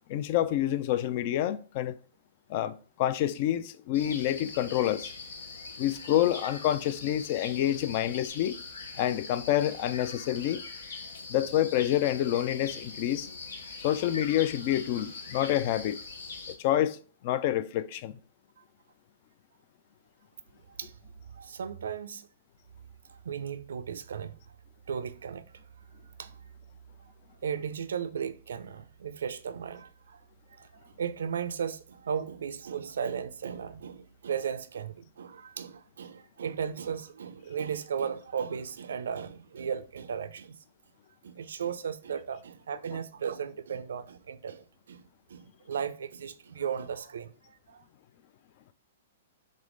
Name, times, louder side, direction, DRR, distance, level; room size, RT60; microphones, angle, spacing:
voice 1, 0.1-2.0 2.5-5.1 5.8-8.6 9.0-10.6 11.3-13.3 13.8-16.0 16.5-17.0 17.2-18.2, left 12 dB, 45° left, 0.3 m, -28 dB
sound 1, 3.9-16.6, left 4 dB, 85° left, 0.9 m, -42 dB
voice 2, 21.3-22.3 23.1-24.4 24.9-25.4 26.2-26.4 27.4-30.2 30.5-40.6 41.2-47.8, right 7 dB, 85° right, 0.3 m, -36 dB
3.5 x 3.2 x 3.7 m
hypercardioid pair, 150°, 0 cm